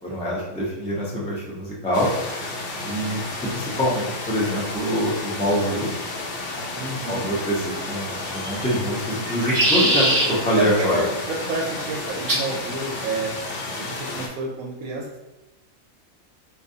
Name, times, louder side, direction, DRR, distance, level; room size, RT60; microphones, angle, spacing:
voice 1, 0.0-2.1 2.8-5.9 7.1-11.0, equal, 5° left, -5 dB, 0.5 m, -25 dB
sound 1, 1.9-14.3, left 2 dB, 65° left, 0.9 m, -32 dB
voice 2, 6.8-7.3 10.6-13.3 13.7-15.2, right 3 dB, 75° right, -1 dB, 1.0 m, -29 dB
sound 2, 8.2-8.7 9.2-10.3 12.3-12.5 13.5-13.9, right 1 dB, 50° right, 0.8 m, -22 dB
4.2 x 2.4 x 2.7 m, 1.1 s
omnidirectional pair, 1.5 m